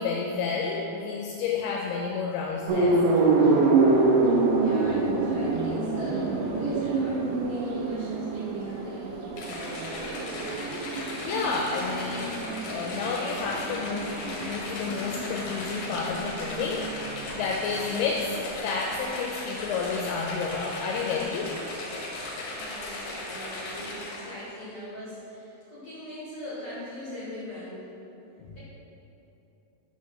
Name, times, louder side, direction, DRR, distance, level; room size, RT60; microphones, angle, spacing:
voice 1, 0.0-3.0 11.2-12.3 12.6-16.8 17.4-18.4 18.6-21.5 28.4-28.5, left 5 dB, 85° left, -1 dB, 2.4 m, -30 dB
sound 1, 2.7-18.6, right 3 dB, 85° right, 2.0 m, -27 dB
voice 2, 4.6-9.1 9.5-10.6 22.5-27.8, left 1 dB, 50° left, -11 dB, 2.0 m, -42 dB
sound 2, 9.4-24.5, left 2 dB, 65° left, 2.3 m, -37 dB
6.0 x 4.3 x 6.0 m, 3.0 s
omnidirectional pair, 4.7 m